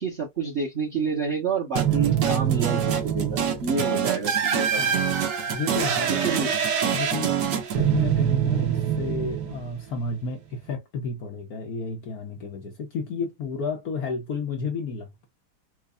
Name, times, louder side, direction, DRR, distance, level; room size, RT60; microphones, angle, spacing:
voice 1, 0.0-4.8 6.2-6.5, right 5 dB, 35° right, 1.5 m, -29 dB
sound 1, 1.8-10.0, right 8 dB, 60° right, 1.4 m, -24 dB
voice 2, 5.5-6.5 6.9-7.4 7.7-15.2, left 4 dB, 65° left, 0.9 m, -32 dB
4.5 x 2.3 x 2.4 m
omnidirectional pair, 2.3 m